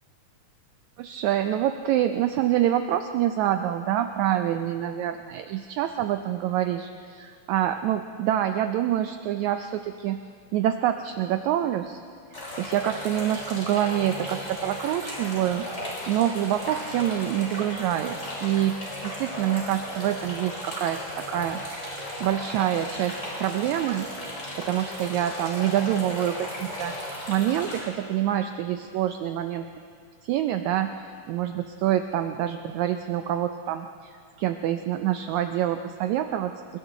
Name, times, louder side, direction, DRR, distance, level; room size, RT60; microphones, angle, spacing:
voice 1, 1.0-10.2 10.5-12.0 12.6-21.9 22.2-24.1 24.6-27.0 27.3-29.7 30.2-36.8, right 11 dB, 75° right, 8 dB, 1.8 m, -26 dB
sound 1, 12.3-27.8, left 1 dB, 20° left, 5.0 m, -36 dB
29.0 x 22.5 x 3.9 m, 2.3 s
omnidirectional pair, 3.7 m